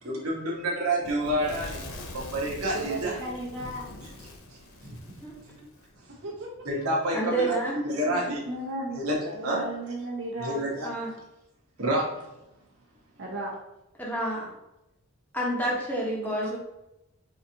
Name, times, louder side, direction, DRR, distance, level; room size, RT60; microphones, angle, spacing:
voice 1, 0.0-1.8 2.1-3.2 4.2-5.0 5.4-5.5 6.6-8.4 8.9-9.7 10.4-11.2 11.8-12.2 16.4-16.5, right 1 dB, 80° right, -3 dB, 1.2 m, -29 dB
Fire / Explosion, 1.0-5.9, left 2 dB, 75° left, 0.7 m, -43 dB
voice 2, 2.7-3.9 6.2-6.5 8.0-9.0 9.3-10.6 13.2-13.5, right 1 dB, 55° right, -2 dB, 1.0 m, -35 dB
voice 3, 7.1-7.7 10.8-11.1 14.0-14.5 15.3-16.6, right 1 dB, 10° left, -4 dB, 1.0 m, -29 dB
5.0 x 2.6 x 2.8 m, 0.91 s
head